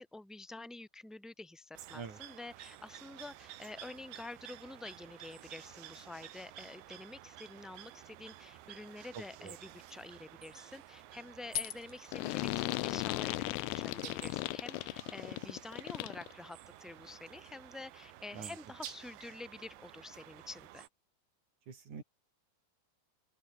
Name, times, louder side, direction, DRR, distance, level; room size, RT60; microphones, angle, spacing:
voice 1, 0.0-20.8, left 2 dB, ahead, 6.2 m, -48 dB
sound 1, 1.7-20.9, right 14 dB, 75° right, 3.5 m, -52 dB
voice 2, 9.1-9.5 18.3-18.5 21.7-22.0, right 5 dB, 45° right, 4.8 m, -45 dB
sound 2, 11.2-16.5, left 10 dB, 60° left, 1.9 m, -47 dB
sound 3, 12.1-16.3, left 22 dB, 90° left, 2.3 m, -36 dB
open air
omnidirectional pair, 5.3 m